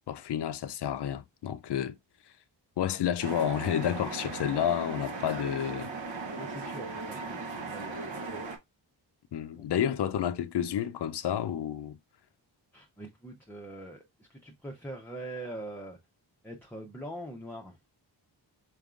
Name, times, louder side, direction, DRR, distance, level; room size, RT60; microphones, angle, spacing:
voice 1, 0.1-2.0 2.8-5.9 9.3-12.0, left 9 dB, 60° left, 0.5 m, -30 dB
sound 1, 3.2-8.6, right 3 dB, 80° right, 1.0 m, -38 dB
voice 2, 6.4-8.5 9.6-9.7 12.7-16.0 16.4-17.8, right 1 dB, 5° left, 0.6 m, -43 dB
4.7 x 3.6 x 2.4 m
wide cardioid pair, 85°, 46 cm